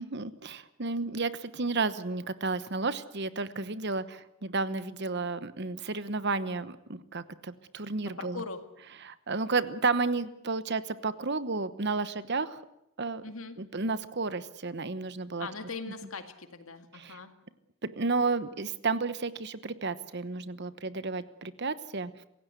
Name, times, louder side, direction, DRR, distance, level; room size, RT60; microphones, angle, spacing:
voice 1, 0.0-8.4 9.0-12.6 13.0-13.2 13.6-15.5 16.9-17.2 17.8-22.2, right 3 dB, 50° right, 14 dB, 1.1 m, -32 dB
voice 2, 8.1-8.7 13.2-13.6 15.4-17.3, left 4 dB, 70° left, 8 dB, 2.1 m, -40 dB
27.0 x 16.0 x 8.2 m, 0.83 s
head